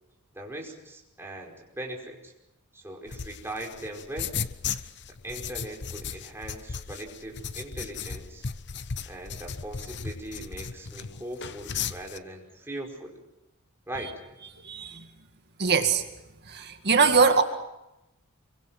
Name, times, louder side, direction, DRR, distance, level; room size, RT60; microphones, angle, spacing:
voice 1, 0.3-2.3 2.7-4.4 5.2-8.4 9.1-13.2 13.9-14.1, right 1 dB, 10° right, -1 dB, 5.1 m, -40 dB
sound 1, 3.1-12.2, left 6 dB, 55° left, 0.9 m, -36 dB
voice 2, 14.6-15.1 15.6-16.1 16.4-17.4, right 5 dB, 50° right, 6 dB, 2.1 m, -22 dB
27.5 x 24.0 x 6.1 m, 0.93 s
head